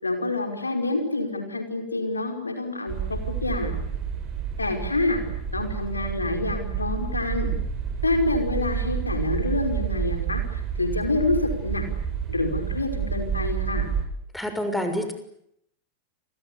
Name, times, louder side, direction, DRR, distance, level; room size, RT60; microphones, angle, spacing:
voice 1, 0.0-3.8 4.6-5.2 5.5-7.5 8.0-11.9 12.3-13.9, left 2 dB, 80° left, 5 dB, 5.3 m, -27 dB
sound 1, 2.9-14.0, right 8 dB, 30° right, 8.0 m, -29 dB
voice 2, 14.3-15.1, left 1 dB, 5° left, 7 dB, 6.4 m, -27 dB
29.5 x 24.0 x 8.5 m, 0.75 s
figure-of-eight pair, 90°, 0 cm